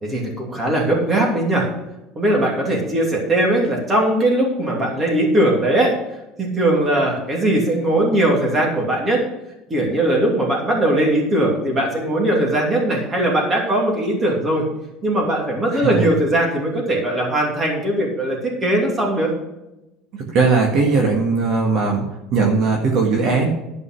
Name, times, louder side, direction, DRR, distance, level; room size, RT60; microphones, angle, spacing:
voice 1, 0.0-1.7 2.2-5.9 6.4-9.2 9.7-14.6 15.0-19.3, right 1 dB, 20° right, -1 dB, 2.8 m, -19 dB
voice 2, 15.7-16.0 20.3-22.1 22.3-23.5, right 4 dB, 50° right, 0 dB, 1.7 m, -18 dB
11.5 x 5.4 x 6.2 m, 0.95 s
cardioid pair, 155°, 0 cm